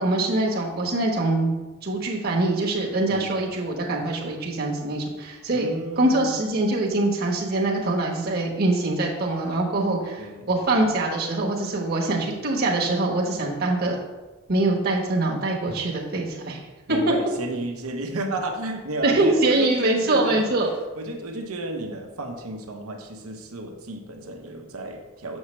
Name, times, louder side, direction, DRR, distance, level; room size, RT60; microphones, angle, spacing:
voice 1, 0.0-1.5 1.8-5.7 6.0-14.0 14.5-16.6 16.9-17.0 19.0-20.7, right 2 dB, 45° right, -3 dB, 1.2 m, -24 dB
voice 2, 3.1-3.4 5.5-6.4 10.2-10.4 16.9-20.5 21.0-25.4, right 2 dB, 85° right, 3 dB, 1.0 m, -32 dB
7.1 x 6.4 x 3.2 m, 1.2 s
head